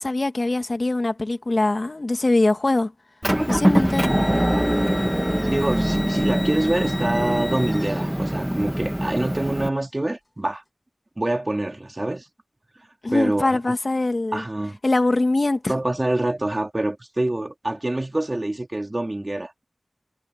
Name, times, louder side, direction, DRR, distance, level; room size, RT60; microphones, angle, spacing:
voice 1, 0.0-2.9 3.5-4.1 13.0-14.4 14.8-15.7, left 2 dB, 45° left, 1.9 m, -22 dB
Motor vehicle (road) / Engine, 3.2-9.7, equal, 10° right, 1.9 m, -23 dB
sound 1, 3.9-8.4, left 1 dB, 20° left, 1.7 m, -37 dB
voice 2, 5.5-10.6 11.2-12.3 13.1-13.7 14.3-14.8 15.7-19.6, right 1 dB, 30° right, 3.5 m, -26 dB
wide cardioid pair, 50°, 0 cm